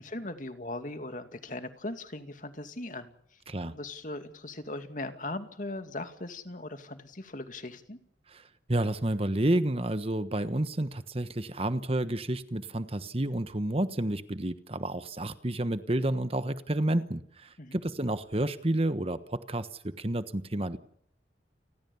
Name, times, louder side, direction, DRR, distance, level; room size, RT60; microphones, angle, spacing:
voice 1, 0.0-3.1 3.7-8.0 17.6-17.8, left 2 dB, 45° left, 8 dB, 2.4 m, -39 dB
voice 2, 8.3-20.8, right 1 dB, 35° right, 11 dB, 1.2 m, -30 dB
29.5 x 20.5 x 7.2 m, 0.67 s
head